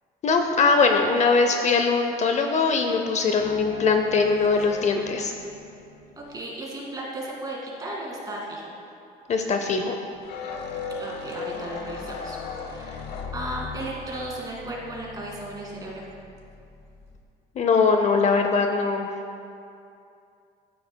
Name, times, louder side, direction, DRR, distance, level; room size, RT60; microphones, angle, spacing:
voice 1, 0.2-5.3 9.3-10.0 17.6-19.1, left 4 dB, 45° left, 5 dB, 0.6 m, -21 dB
sound 1, 3.4-6.4 10.1-17.2, left 5 dB, 70° left, 0.9 m, -38 dB
voice 2, 6.2-8.7 11.0-13.0 13.3-16.0, right 1 dB, 20° right, -3 dB, 2.1 m, -35 dB
11.5 x 9.2 x 2.2 m, 2.6 s
cardioid pair, 110°, 17 cm